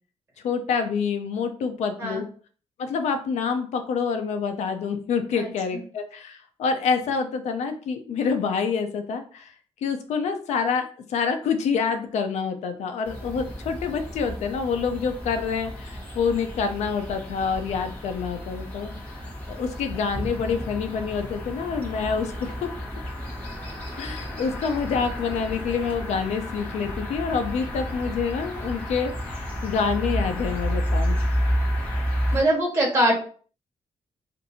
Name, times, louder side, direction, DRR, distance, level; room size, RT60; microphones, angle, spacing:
voice 1, 0.4-2.3 2.8-9.5 9.8-18.9 19.5-22.7 24.0-31.2, left 5 dB, 90° left, 7 dB, 0.5 m, -27 dB
voice 2, 5.3-5.8 32.3-33.1, right 1 dB, 20° right, -2 dB, 1.3 m, -23 dB
sound 1, 13.0-32.4, equal, 10° left, 1.2 m, -31 dB
2.6 x 2.6 x 4.1 m, 0.43 s
cardioid pair, 125°, 11 cm